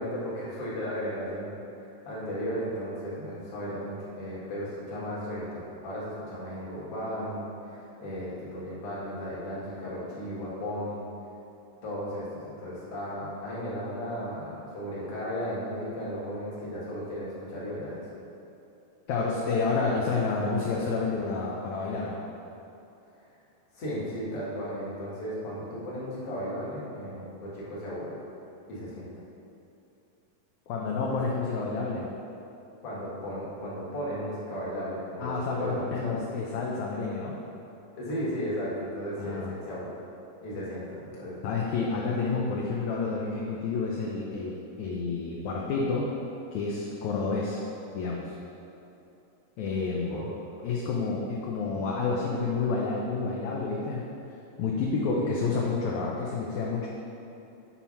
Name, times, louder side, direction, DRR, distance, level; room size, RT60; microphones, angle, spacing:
voice 1, 0.0-1.6 2.0-11.1 11.8-18.0 23.7-28.2 28.7-29.1 32.8-36.2 38.0-39.9 40.4-41.4 50.1-50.2 50.5-50.7, equal, 50° left, -8 dB, 2.5 m, -35 dB
voice 2, 19.1-22.2 30.7-32.1 35.2-37.4 39.2-39.5 41.4-46.1 46.5-47.7 47.9-48.3 49.6-50.3 50.6-54.1 54.6-56.9, left 4 dB, 75° left, -3 dB, 1.9 m, -29 dB
7.3 x 4.4 x 5.5 m, 2.8 s
omnidirectional pair, 3.8 m